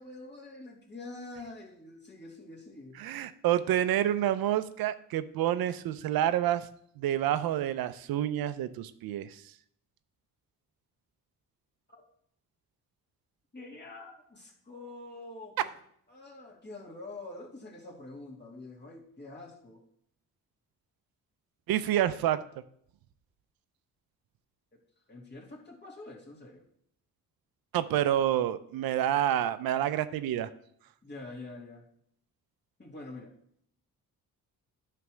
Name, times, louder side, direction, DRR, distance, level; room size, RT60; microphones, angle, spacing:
voice 1, 0.0-3.0 11.9-12.0 13.5-15.7 16.1-19.8 24.7-24.8 25.1-26.6 31.0-31.8 32.8-33.3, left 2 dB, 30° left, -2 dB, 2.5 m, -46 dB
voice 2, 3.0-6.7 7.0-9.4 21.7-22.4 27.7-30.5, right 11 dB, 80° right, 13 dB, 0.6 m, -28 dB
9.4 x 3.4 x 6.1 m, 0.69 s
cardioid pair, 75°, 35 cm